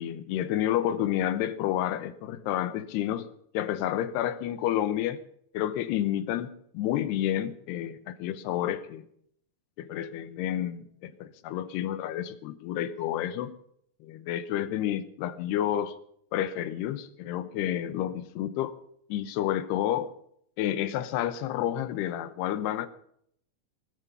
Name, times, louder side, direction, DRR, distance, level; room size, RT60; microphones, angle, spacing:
voice 1, 0.0-3.3 3.5-5.2 5.5-9.1 9.8-13.6 14.0-15.9 16.3-18.7 19.1-20.1 20.6-22.9, left 11 dB, 75° left, 14 dB, 2.8 m, -30 dB
20.5 x 8.8 x 7.0 m, 0.67 s
omnidirectional pair, 5.1 m